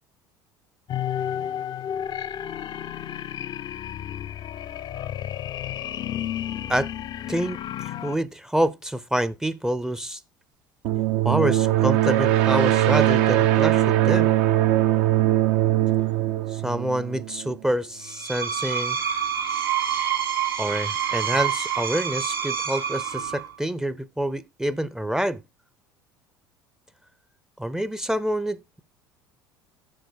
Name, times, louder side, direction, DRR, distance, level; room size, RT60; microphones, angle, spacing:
sound 1, 0.9-8.2, left 10 dB, 40° left, 0.5 m, -32 dB
voice 1, 7.3-7.6 7.8-10.2 11.2-14.3 16.5-19.0 20.6-25.4 27.6-28.8, right 1 dB, 5° right, 0.6 m, -27 dB
sound 2, 10.8-17.5, right 15 dB, 65° right, 0.7 m, -21 dB
Screech, 18.1-23.5, right 9 dB, 90° right, 1.8 m, -27 dB
7.8 x 6.4 x 4.8 m
hypercardioid pair, 65°, 11 cm